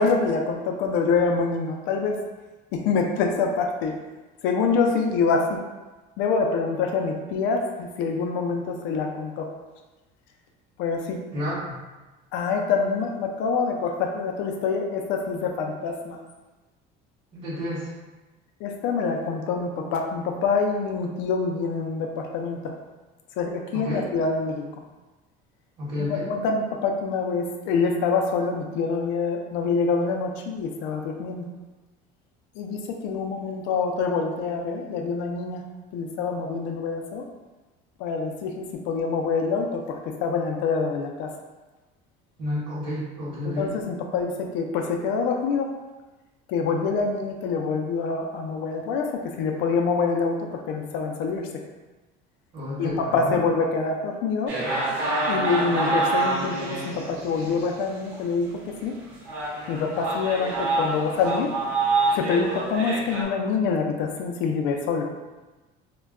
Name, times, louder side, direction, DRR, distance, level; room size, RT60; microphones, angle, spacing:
voice 1, 0.0-2.2 2.7-3.9 4.4-5.5 6.2-9.5 10.8-11.2 12.3-16.2 18.6-22.7 23.4-24.6 26.0-31.4 32.6-35.6 35.9-37.2 38.0-41.3 43.4-45.7 46.5-49.1 49.4-51.5 52.8-54.5 55.3-58.5 58.8-58.9 59.7-61.5 62.1-65.1, left 4 dB, 70° left, 3 dB, 0.4 m, -26 dB
voice 2, 17.3-17.9 23.8-24.1 25.8-26.3 42.4-43.7 52.5-53.4, left 1 dB, 40° right, -9 dB, 0.9 m, -30 dB
sound 1, 54.5-57.7 58.1-58.2 58.8-58.9 59.3-63.2, right 2 dB, 75° right, 0.8 m, -26 dB
2.2 x 2.1 x 3.5 m, 1.2 s
cardioid pair, 170°, 20 cm